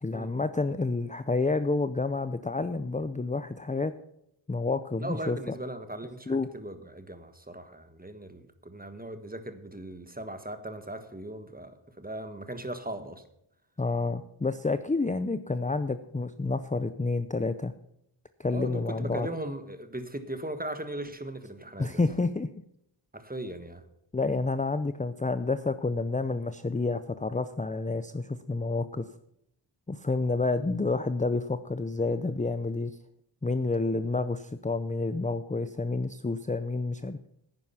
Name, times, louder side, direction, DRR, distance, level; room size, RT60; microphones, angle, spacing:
voice 1, 0.0-3.9 4.5-5.6 6.3-6.5 13.8-17.7 18.4-19.3 21.8-22.5 24.1-29.0 29.9-33.0 33.4-37.3, left 3 dB, 15° left, 11 dB, 0.5 m, -29 dB
voice 2, 5.0-13.2 18.5-22.0 23.1-23.8, right 1 dB, 20° right, 9 dB, 1.4 m, -38 dB
10.5 x 9.5 x 5.7 m, 0.76 s
wide cardioid pair, 50°, 49 cm